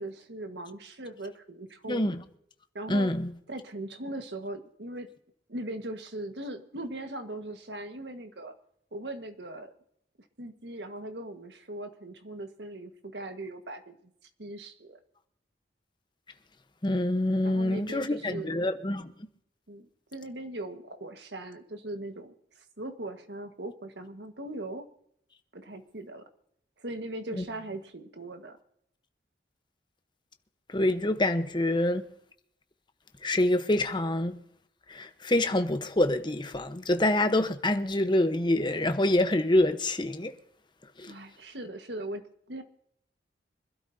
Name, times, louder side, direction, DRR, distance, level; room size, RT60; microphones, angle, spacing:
voice 1, 0.0-2.0 2.7-3.1 3.5-5.1 5.5-8.5 8.9-9.7 10.4-14.1 14.4-15.0 17.4-18.6 19.7-24.8 25.5-26.2 26.8-28.6 41.1-42.6, right 1 dB, 75° right, 1.5 m, -39 dB
voice 2, 1.9-2.2 2.9-3.3 16.8-19.1 27.4-27.5 30.7-32.0 33.2-34.4 34.9-40.3 41.0-41.1, left 1 dB, 25° left, 1.0 m, -26 dB
25.0 x 12.5 x 2.7 m
head